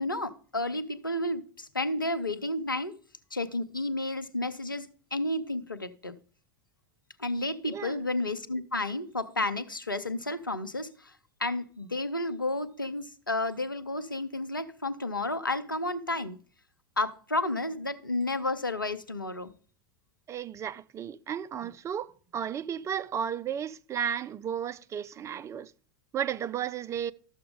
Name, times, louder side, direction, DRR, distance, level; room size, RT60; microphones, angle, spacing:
voice 1, 0.0-3.0 3.3-6.2 7.2-11.1 11.4-16.4 17.0-19.5, left 2 dB, 90° left, 0.6 m, -31 dB
voice 2, 7.6-8.0 20.3-25.7 26.1-27.1, right 8 dB, 25° right, 0.4 m, -34 dB
12.5 x 6.8 x 3.6 m
figure-of-eight pair, 80°, 11 cm